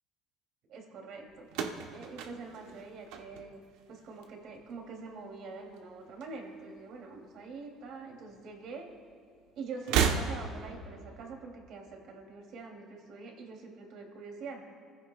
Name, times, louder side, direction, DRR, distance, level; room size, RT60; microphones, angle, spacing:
voice 1, 0.7-1.5 1.9-3.6 3.9-8.9 9.6-14.6, right 4 dB, 65° right, 1 dB, 3.0 m, -45 dB
sound 1, 1.5-3.8 4.1-4.7 5.8-6.8 7.0-7.2 8.3-8.4 9.8-10.8, right 7 dB, 80° right, 1.1 m, -33 dB
26.0 x 15.5 x 2.4 m, 2.2 s
supercardioid pair, 100°, 0 cm